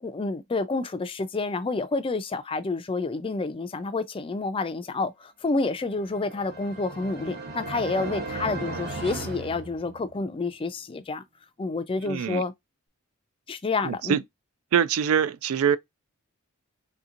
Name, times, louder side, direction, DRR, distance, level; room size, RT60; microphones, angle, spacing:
voice 1, 0.0-11.2 11.6-12.5 13.5-14.2, left 3 dB, 25° left, 0.4 m, -29 dB
sound 1, 5.9-10.4, right 2 dB, 50° right, 0.9 m, -36 dB
voice 2, 12.1-12.4 13.8-14.2 14.7-15.8, right 8 dB, 70° right, 0.3 m, -24 dB
3.5 x 2.8 x 2.4 m
head